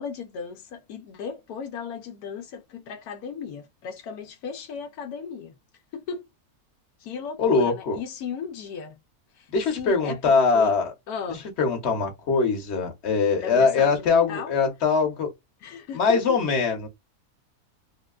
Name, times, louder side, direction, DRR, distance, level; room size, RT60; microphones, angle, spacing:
voice 1, 0.0-5.6 5.9-6.2 7.0-9.0 9.4-10.7 11.1-11.5 13.4-14.5 15.6-16.4, left 6 dB, 85° left, 1.1 m, -36 dB
voice 2, 7.4-8.0 9.5-10.9 11.6-15.3 15.9-16.9, left 4 dB, 50° left, 1.2 m, -22 dB
3.5 x 2.2 x 2.3 m
omnidirectional pair, 1.6 m